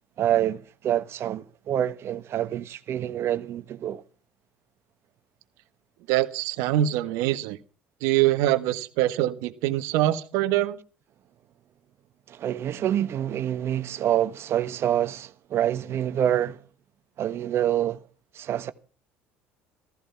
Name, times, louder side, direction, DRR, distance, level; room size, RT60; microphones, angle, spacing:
voice 1, 0.2-4.0 12.3-16.6 17.2-18.0 18.3-18.7, right 11 dB, 55° right, 1.3 m, -26 dB
voice 2, 6.1-7.6 8.0-10.8, right 14 dB, 75° right, 1.4 m, -24 dB
15.0 x 15.0 x 5.9 m
hypercardioid pair, 70°, 5 cm